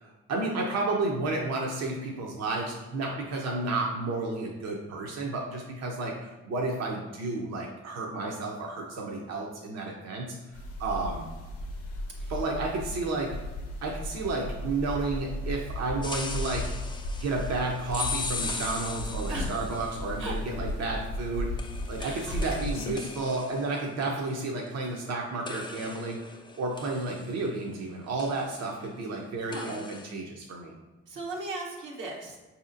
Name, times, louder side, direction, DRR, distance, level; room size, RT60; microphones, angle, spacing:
voice 1, 0.0-10.4 10.8-11.3 12.3-13.3 13.8-16.6 17.2-21.5 21.9-26.2 26.6-30.7, right 2 dB, 55° right, -1 dB, 0.7 m, -32 dB
sound 1, 10.5-22.9, left 1 dB, 85° left, 0.6 m, -36 dB
sound 2, 16.0-20.2 21.6-25.1 25.4-27.8 28.2-28.7 29.5-30.1, left 4 dB, 15° left, 0.4 m, -39 dB
voice 2, 22.0-22.4 29.5-29.7 31.1-32.4, right 2 dB, 80° right, -2 dB, 1.0 m, -37 dB
4.7 x 2.8 x 2.5 m, 1.2 s
supercardioid pair, 50°, 31 cm